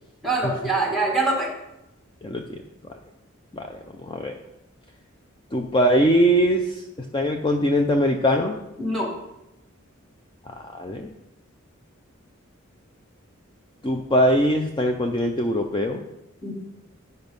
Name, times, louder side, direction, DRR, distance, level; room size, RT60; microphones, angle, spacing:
voice 1, 0.2-1.5 8.8-9.1 16.4-16.5, right 2 dB, ahead, 0 dB, 1.6 m, -24 dB
voice 2, 2.2-2.6 3.5-4.4 5.5-6.8 7.1-8.6 10.6-11.1 13.8-16.0, equal, 25° left, 4 dB, 0.5 m, -22 dB
10.0 x 5.4 x 5.3 m, 0.90 s
head